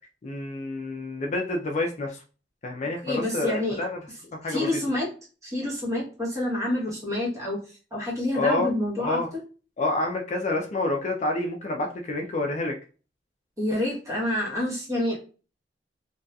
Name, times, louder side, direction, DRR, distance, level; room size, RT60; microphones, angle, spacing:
voice 1, 0.2-2.2 2.6-4.0 4.4-4.8 8.3-8.7 9.0-9.3 9.8-12.7, left 2 dB, 40° left, 2 dB, 0.4 m, -28 dB
voice 2, 3.0-3.8 4.5-5.1 5.4-7.6 7.9-9.2 13.6-15.2, left 1 dB, 20° right, -4 dB, 1.0 m, -27 dB
2.7 x 2.3 x 2.2 m, 0.36 s
head